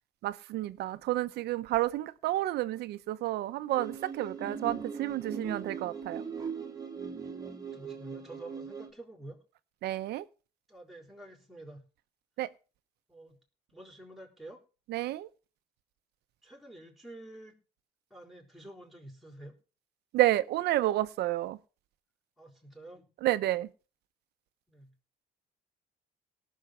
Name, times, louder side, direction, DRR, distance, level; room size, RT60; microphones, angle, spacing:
voice 1, 0.2-6.2 9.8-10.3 12.4-12.5 14.9-15.3 20.1-21.6 23.2-23.7, right 15 dB, 75° right, 0.8 m, -30 dB
sound 1, 3.7-8.9, right 5 dB, 20° right, 1.7 m, -40 dB
voice 2, 7.4-9.4 10.7-11.8 13.1-13.4 13.7-14.6 16.4-17.6 18.1-19.6 22.4-23.1 24.7-24.9, right 1 dB, ahead, 3.9 m, -49 dB
18.0 x 6.5 x 4.5 m
cardioid pair, 110°, 17 cm